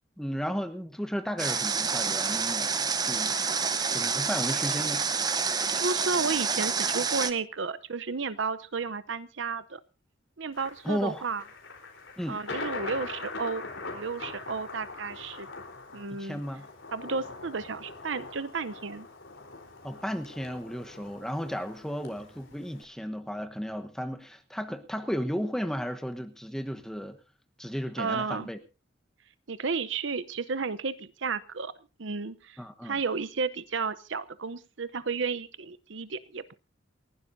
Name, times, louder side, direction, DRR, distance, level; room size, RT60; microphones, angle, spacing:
voice 1, 0.2-3.4 3.9-5.1 10.8-11.3 12.2-12.4 16.1-16.7 19.8-27.2 27.6-28.6 32.6-33.0, equal, 5° left, 6 dB, 1.1 m, -34 dB
Water, 1.4-7.3, right 5 dB, 20° right, 0.9 m, -28 dB
voice 2, 5.7-9.8 10.4-11.4 12.3-13.7 13.9-15.5 15.9-16.4 16.9-19.1 28.0-28.5 29.5-31.7 32.0-36.5, right 4 dB, 70° right, 16 dB, 0.8 m, -32 dB
Thunder, 10.5-22.8, left 3 dB, 70° left, 4.1 m, -42 dB
28.5 x 12.0 x 2.7 m, 0.30 s
head